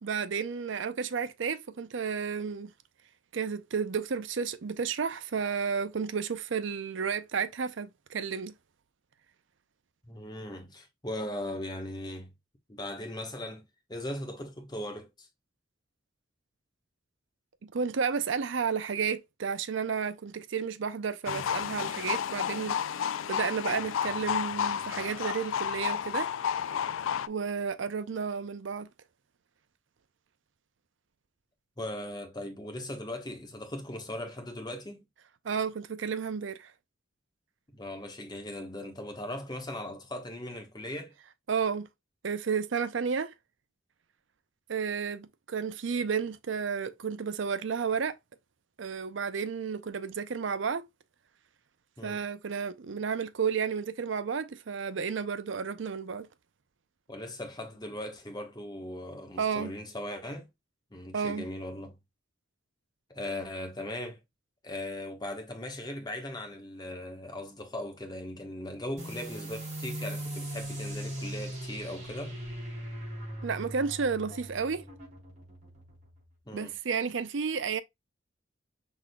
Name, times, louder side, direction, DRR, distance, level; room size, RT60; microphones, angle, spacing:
voice 1, 0.0-2.7 3.3-8.5 17.6-26.3 27.3-28.9 35.4-36.7 41.5-41.9 42.2-43.3 44.7-48.2 48.8-50.9 52.0-56.3 59.4-59.7 61.1-61.5 73.4-74.8 76.5-77.8, right 6 dB, 65° right, 0.5 m, -32 dB
voice 2, 10.1-12.3 12.7-15.3 31.8-35.0 37.7-41.1 52.0-52.2 57.1-60.5 60.9-61.9 63.1-64.2 64.6-72.4 76.5-76.7, left 1 dB, 20° left, 1.2 m, -39 dB
sound 1, 21.3-27.3, left 8 dB, 85° left, 0.4 m, -31 dB
sound 2, 69.0-76.2, right 1 dB, 40° right, 3.6 m, -39 dB
6.1 x 3.6 x 2.2 m
head